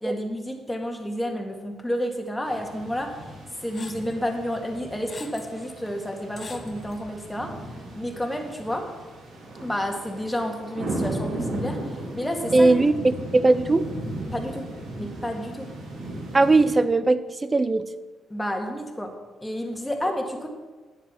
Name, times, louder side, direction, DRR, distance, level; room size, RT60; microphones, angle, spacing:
voice 1, 0.0-3.2 3.6-7.5 7.9-8.9 9.6-12.7 14.3-14.7 15.0-15.7 18.3-19.1 19.4-20.5, equal, 10° left, 3 dB, 1.8 m, -30 dB
sound 1, 2.4-16.8, right 1 dB, 75° right, 3.1 m, -36 dB
sound 2, 3.7-4.1 4.7-5.5 5.9-6.0 6.4-7.0, left 4 dB, 35° left, 1.1 m, -43 dB
voice 2, 12.5-13.9 16.3-17.8, right 3 dB, 25° right, 13 dB, 0.6 m, -19 dB
10.0 x 7.5 x 6.0 m, 1.3 s
cardioid pair, 90°, 0 cm